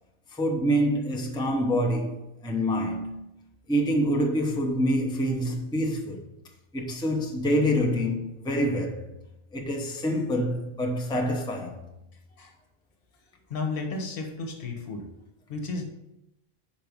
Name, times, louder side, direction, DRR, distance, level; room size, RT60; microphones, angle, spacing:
voice 1, 0.3-3.1 3.7-6.2 6.7-9.1 9.5-11.9, equal, 5° left, 0.7 m, -26 dB
voice 2, 13.5-15.1 15.5-15.8, left 3 dB, 65° left, 1.2 m, -33 dB
5.9 x 4.7 x 5.2 m
omnidirectional pair, 1.0 m